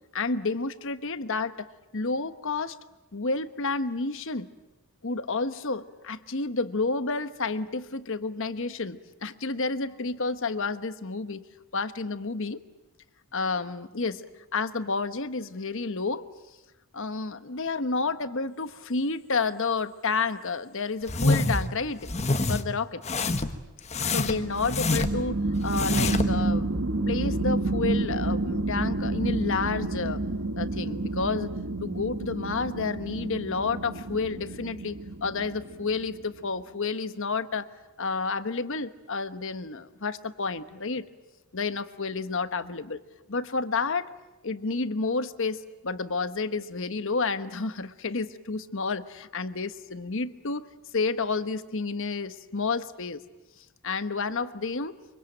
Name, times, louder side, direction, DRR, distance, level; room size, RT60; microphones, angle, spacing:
voice 1, 0.1-1.7 1.9-2.8 3.1-4.5 5.0-11.4 11.7-12.6 13.3-14.3 14.5-16.2 16.9-22.1 22.5-23.0 24.0-26.7 27.1-30.2 30.6-31.5 31.8-37.7 38.0-41.0 41.5-43.0 43.3-44.1 44.4-50.6 50.9-53.2 53.8-54.9, left 4 dB, 60° left, 12 dB, 1.2 m, -30 dB
sound 1, 21.1-21.7 22.0-22.6 23.0-23.6 23.9-25.3 25.7-26.3, left 3 dB, 30° left, 1.3 m, -26 dB
sound 2, 24.2-36.3, right 2 dB, 60° right, 1.3 m, -30 dB
25.0 x 24.0 x 9.0 m, 1.1 s
head